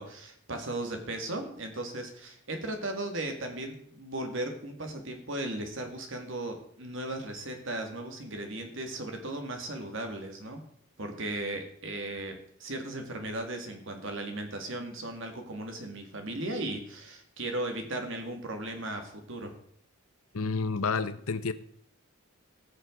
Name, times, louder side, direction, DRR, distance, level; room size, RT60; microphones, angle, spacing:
voice 1, 0.0-10.6 11.0-19.5, right 1 dB, 60° right, 4 dB, 2.1 m, -36 dB
voice 2, 20.3-21.5, left 4 dB, 75° left, 13 dB, 0.8 m, -29 dB
19.0 x 6.5 x 3.9 m, 0.66 s
head